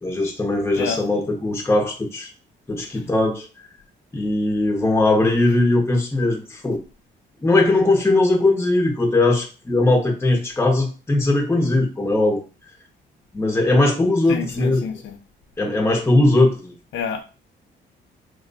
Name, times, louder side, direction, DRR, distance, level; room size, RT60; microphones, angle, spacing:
voice 1, 0.0-2.3 2.7-3.5 4.1-6.8 7.4-12.4 13.3-14.8 15.6-16.7, left 2 dB, 10° left, 0.8 m, -19 dB
voice 2, 14.3-15.2 16.9-17.2, left 6 dB, 75° left, 0.7 m, -29 dB
3.0 x 2.2 x 3.9 m
cardioid pair, 90°, 20 cm